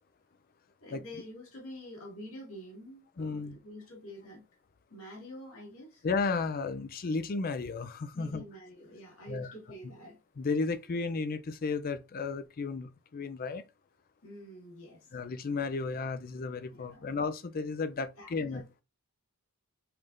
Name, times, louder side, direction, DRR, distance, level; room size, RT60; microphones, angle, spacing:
voice 1, 0.8-4.4 4.9-6.1 8.1-10.2 14.2-15.1 16.7-17.1 18.2-18.6, equal, 65° left, 2.0 m, -47 dB
voice 2, 3.2-3.6 6.0-8.4 9.3-9.5 10.4-13.6 15.1-18.6, left 4 dB, 40° left, 0.4 m, -33 dB
5.6 x 3.4 x 2.5 m
head